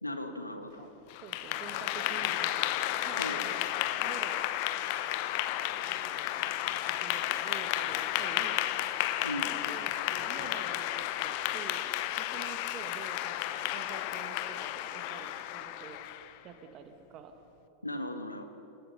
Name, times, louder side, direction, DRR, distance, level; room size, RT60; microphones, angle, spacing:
voice 1, 0.0-0.9 3.2-3.5 9.2-9.5 17.8-18.5, left 1 dB, 85° left, 8 dB, 1.5 m, -37 dB
voice 2, 0.6-0.9 1.2-2.8 3.1-4.5 5.8-6.5 7.0-8.6 9.7-16.0 16.4-17.3, right 7 dB, 35° right, 6 dB, 2.1 m, -48 dB
Clapping / Applause, 1.1-16.4, left 14 dB, 45° left, 0.9 m, -33 dB
29.5 x 19.0 x 5.7 m, 3.0 s
figure-of-eight pair, 90°, 0 cm